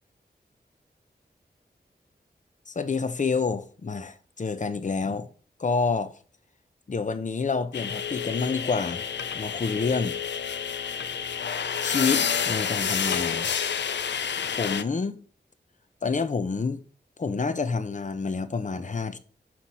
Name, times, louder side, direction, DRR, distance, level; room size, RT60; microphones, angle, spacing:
voice 1, 2.7-5.3 5.6-6.2 6.9-9.1 9.3-10.2 11.8-13.5 14.5-15.2 16.0-16.8 17.2-19.2, left 4 dB, 45° left, 0.7 m, -28 dB
sound 1, 7.7-14.8, left 7 dB, 85° left, 0.5 m, -29 dB
5.9 x 4.3 x 4.6 m
wide cardioid pair, 75°, 18 cm